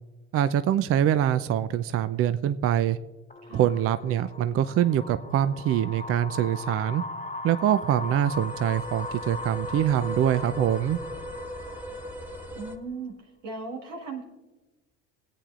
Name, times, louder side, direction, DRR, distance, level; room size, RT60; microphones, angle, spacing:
voice 1, 0.3-3.0 3.5-7.0 7.4-11.0, right 10 dB, 40° right, 13 dB, 0.5 m, -24 dB
sound 1, 3.3-12.8, left 2 dB, 20° left, 1.1 m, -39 dB
sound 2, 8.0-12.8, equal, 5° right, 1.4 m, -39 dB
voice 2, 12.5-14.2, right 4 dB, 90° right, -1 dB, 1.9 m, -37 dB
23.5 x 8.6 x 2.5 m, 1.2 s
hypercardioid pair, 65°, 35 cm